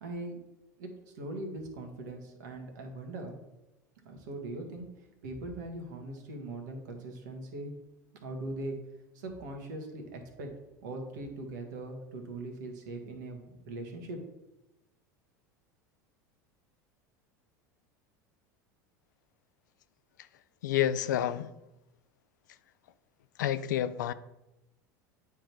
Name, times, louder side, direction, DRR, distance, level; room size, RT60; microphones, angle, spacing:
voice 1, 0.0-0.4 0.8-0.9 1.1-3.4 4.0-4.8 5.2-7.7 8.2-8.8 9.1-10.5 10.8-14.2, right 2 dB, 75° right, 3 dB, 1.6 m, -40 dB
voice 2, 20.6-21.5 23.4-24.1, left 11 dB, 80° left, 15 dB, 0.4 m, -29 dB
9.2 x 3.7 x 4.6 m, 0.96 s
hypercardioid pair, 85°, 10 cm